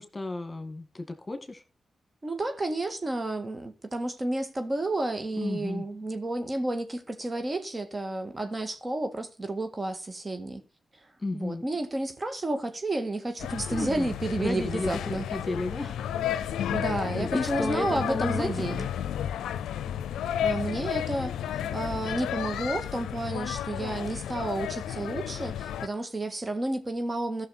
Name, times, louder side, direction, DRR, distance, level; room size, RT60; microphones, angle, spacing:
voice 1, 0.0-1.6 5.4-5.8 11.2-11.6 13.7-14.1 14.4-16.1 16.3-16.5 17.2-18.8, left 2 dB, 30° left, 2.0 m, -33 dB
voice 2, 2.2-10.6 11.3-15.3 16.7-18.9 20.4-21.3 21.7-27.5, right 2 dB, 35° right, 1.8 m, -31 dB
sound 1, 13.4-25.9, left 10 dB, 85° left, 0.5 m, -32 dB
13.5 x 6.4 x 4.2 m
supercardioid pair, 45°, 0 cm